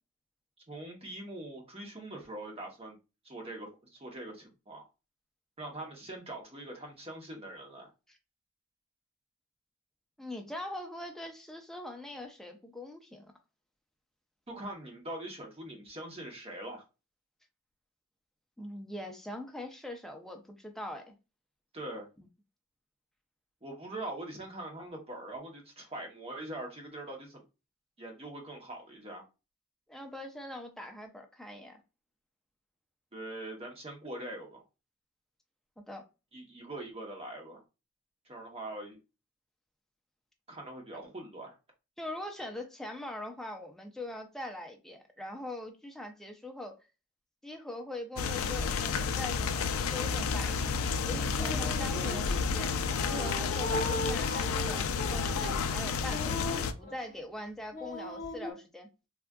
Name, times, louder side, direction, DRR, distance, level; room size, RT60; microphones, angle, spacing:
voice 1, 0.7-3.0 3.2-4.8 5.6-7.9 14.5-16.8 21.7-22.1 23.6-27.4 28.0-29.2 33.1-34.6 36.3-37.6 38.3-39.0 40.5-41.6, right 1 dB, 30° right, 0.8 m, -42 dB
voice 2, 10.2-13.3 18.6-21.2 22.2-22.3 29.9-31.8 35.8-36.0 42.0-46.8 47.4-50.7 51.0-52.7 53.0-58.9, left 1 dB, ahead, 0.4 m, -42 dB
sound 1, 48.2-56.7, left 5 dB, 85° left, 0.4 m, -31 dB
sound 2, 51.3-52.4 53.0-57.2 57.7-58.5, left 1 dB, 35° left, 0.7 m, -38 dB
3.5 x 2.3 x 2.2 m
head